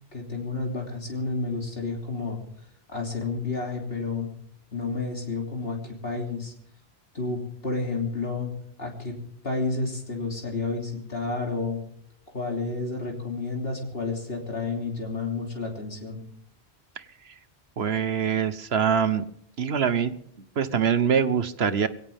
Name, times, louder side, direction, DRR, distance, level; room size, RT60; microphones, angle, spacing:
voice 1, 0.1-2.4 2.9-4.3 4.7-6.5 7.1-8.5 8.8-9.2 9.4-11.8 12.3-16.2, left 3 dB, 65° left, 0 dB, 3.4 m, -30 dB
voice 2, 17.8-19.2 19.6-20.2 20.6-21.9, right 7 dB, 70° right, 12 dB, 1.3 m, -24 dB
22.0 x 17.0 x 3.6 m, 0.67 s
omnidirectional pair, 1.1 m